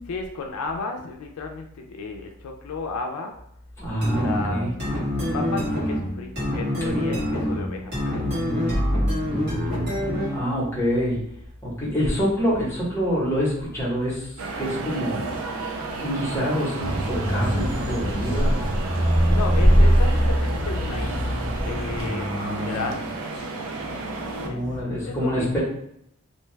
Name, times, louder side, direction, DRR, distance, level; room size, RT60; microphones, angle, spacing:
voice 1, 0.1-3.3 4.2-4.7 5.3-10.1 19.3-21.3 21.6-23.0 23.9-25.6, left 4 dB, 90° left, 3 dB, 0.3 m, -34 dB
voice 2, 3.8-4.7 6.8-6.9 10.3-11.2 11.6-14.3 14.6-15.4 16.0-18.7 21.7-22.8 24.4-25.6, equal, 10° left, -7 dB, 0.8 m, -26 dB
sound 1, 4.0-10.5, equal, 50° right, 1.4 m, -25 dB
sound 2, 14.4-24.5, right 3 dB, 75° right, 0.4 m, -32 dB
sound 3, 16.8-22.1, equal, 35° right, 1.2 m, -21 dB
2.6 x 2.2 x 3.1 m, 0.74 s
head